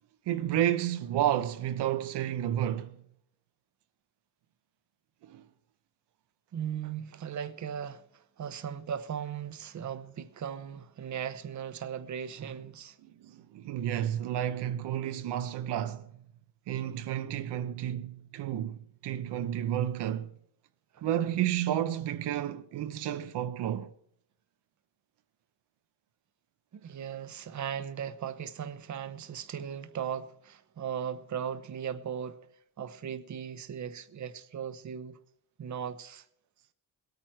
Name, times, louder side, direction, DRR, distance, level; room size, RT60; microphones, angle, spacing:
voice 1, 0.3-3.0 5.2-5.5 13.0-16.1 16.7-20.3 21.0-23.9, right 11 dB, 80° right, 0.9 m, -31 dB
voice 2, 6.5-13.0 20.9-21.0 26.7-32.4 32.8-35.2 35.6-36.3, right 8 dB, 45° right, 0.9 m, -38 dB
21.0 x 9.0 x 4.5 m
cardioid pair, 95°, 41 cm